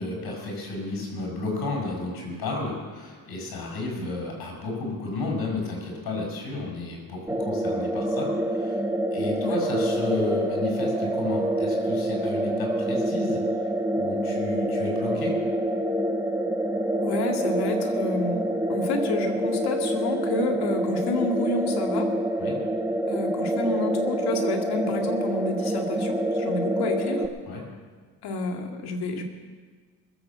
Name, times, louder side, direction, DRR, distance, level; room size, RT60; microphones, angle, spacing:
voice 1, 0.0-8.8 9.1-13.4 14.0-15.4 22.4-22.6 27.5-27.6, left 2 dB, 70° left, -1 dB, 6.4 m, -32 dB
sound 1, 7.3-27.3, right 1 dB, 5° right, 1.1 m, -26 dB
voice 2, 17.0-22.1 23.1-27.3 28.2-29.2, left 2 dB, 85° left, 2 dB, 2.3 m, -29 dB
21.5 x 8.1 x 7.4 m, 1.5 s
cardioid pair, 95°, 38 cm